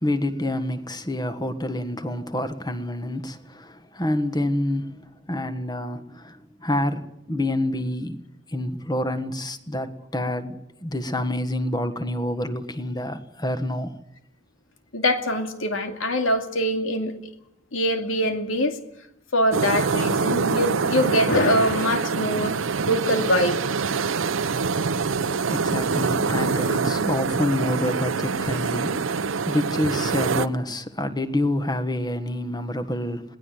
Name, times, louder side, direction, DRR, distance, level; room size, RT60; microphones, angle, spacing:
voice 1, 0.0-8.2 8.5-14.0 25.4-33.4, left 1 dB, 20° left, 1.5 m, -27 dB
voice 2, 14.9-17.1 17.7-18.8 19.3-22.5 22.9-23.8, equal, 90° left, 2.4 m, -23 dB
sound 1, 19.5-30.5, right 5 dB, 80° right, 0.7 m, -25 dB
22.0 x 18.0 x 7.8 m
head